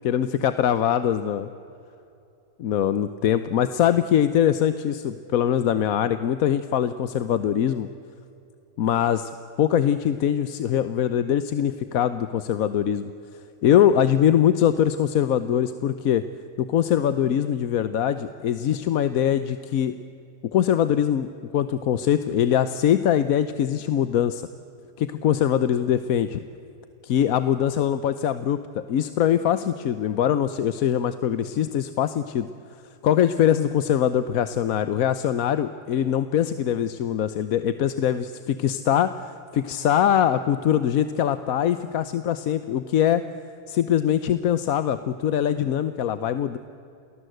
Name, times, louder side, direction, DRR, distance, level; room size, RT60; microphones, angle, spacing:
voice 1, 0.0-1.5 2.6-7.9 8.8-9.3 9.6-13.1 13.6-16.2 16.6-19.9 20.5-24.5 25.0-26.4 27.0-32.5 33.0-43.2 43.7-46.6, left 10 dB, 65° left, 12 dB, 1.1 m, -22 dB
29.0 x 19.5 x 7.9 m, 2.8 s
omnidirectional pair, 1.7 m